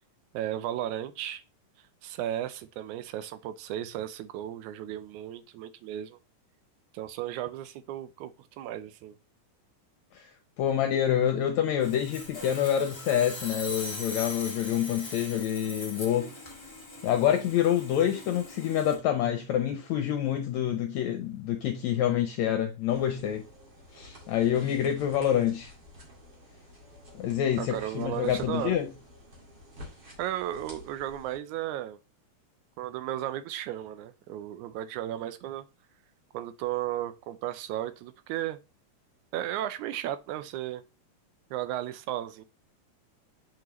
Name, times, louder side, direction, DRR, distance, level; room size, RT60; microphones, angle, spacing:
voice 1, 0.3-1.4 2.0-6.2 6.9-9.2 24.5-24.7 27.6-28.8 30.2-32.0 32.8-35.7 36.3-38.6 39.3-40.8 41.5-42.4, right 12 dB, 80° right, 1.9 m, -35 dB
voice 2, 10.6-16.3 17.0-23.4 23.9-25.7 27.1-28.9, left 10 dB, 70° left, 1.9 m, -27 dB
Sawing, 11.8-19.0, left 2 dB, 20° left, 0.8 m, -41 dB
sound 1, 22.9-31.4, left 1 dB, 35° right, 2.1 m, -50 dB
7.7 x 5.0 x 3.0 m
omnidirectional pair, 3.6 m